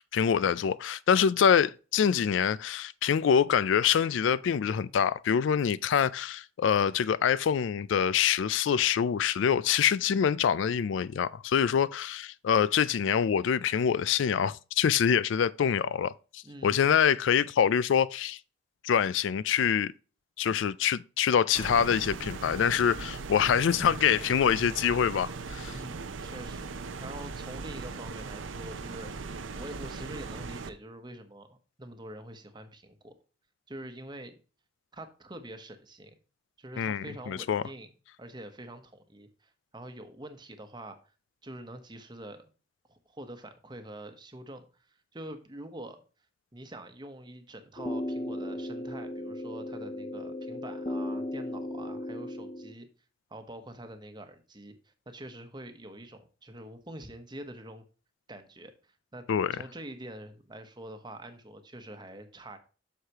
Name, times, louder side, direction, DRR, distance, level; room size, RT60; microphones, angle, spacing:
voice 1, 0.0-18.4 18.8-19.9 20.4-25.7 36.8-37.6 59.3-59.5, left 8 dB, 75° left, 0.3 m, -25 dB
voice 2, 16.4-16.9 25.7-33.1 33.7-34.3 34.9-36.2 36.6-37.9 38.2-41.0 41.4-42.5 42.9-44.7 45.1-46.0 46.5-52.9 53.3-57.8 58.3-58.7 59.1-59.3 59.5-62.6, right 1 dB, 25° right, 1.0 m, -45 dB
sound 1, 21.5-30.7, right 4 dB, 85° right, 0.7 m, -39 dB
sound 2, 47.8-52.7, left 1 dB, 25° left, 0.6 m, -36 dB
7.9 x 6.5 x 2.9 m
head